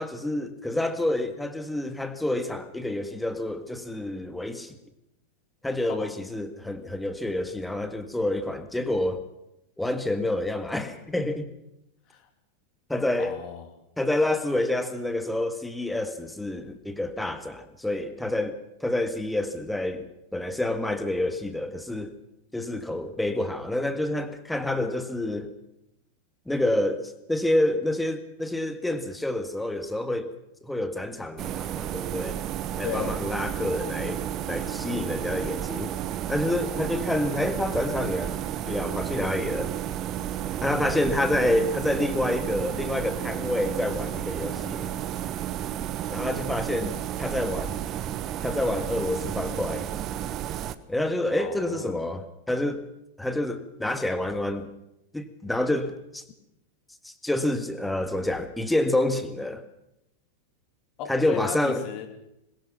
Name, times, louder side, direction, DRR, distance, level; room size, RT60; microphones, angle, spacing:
voice 1, 0.0-4.8 5.6-9.2 9.8-11.5 12.9-13.4 14.0-20.1 20.3-22.1 22.5-25.5 26.5-30.3 30.6-32.4 32.8-34.2 34.5-35.9 36.3-39.7 40.6-44.9 46.1-47.8 48.4-49.9 50.9-52.8 53.2-54.7 55.1-56.2 57.0-59.6 61.1-61.8, left 1 dB, 5° left, 9 dB, 1.8 m, -28 dB
voice 2, 13.2-13.7 32.8-33.2 51.4-52.1 61.0-62.1, left 9 dB, 40° left, 6 dB, 3.1 m, -36 dB
sound 1, 31.4-50.8, right 11 dB, 35° right, 1.0 m, -32 dB
21.5 x 21.0 x 5.9 m, 0.85 s
figure-of-eight pair, 90°, 0 cm